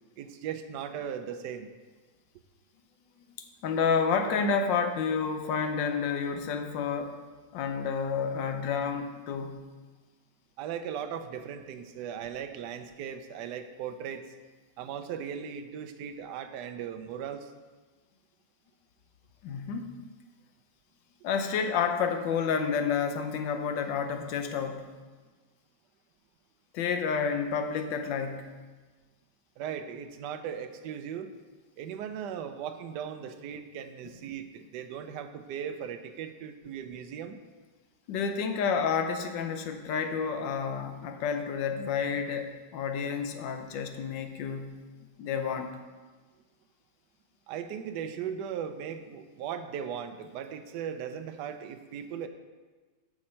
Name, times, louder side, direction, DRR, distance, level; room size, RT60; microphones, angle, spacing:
voice 1, 0.2-1.7 10.6-14.2 14.8-17.5 29.6-31.3 31.8-37.4 47.5-52.3, right 8 dB, 75° right, 8 dB, 1.2 m, -38 dB
voice 2, 3.6-7.2 7.5-9.7 19.4-20.0 21.2-24.9 26.7-28.5 38.1-44.8 45.2-45.7, left 6 dB, 80° left, 6 dB, 1.4 m, -30 dB
9.5 x 6.1 x 4.3 m, 1.3 s
omnidirectional pair, 2.0 m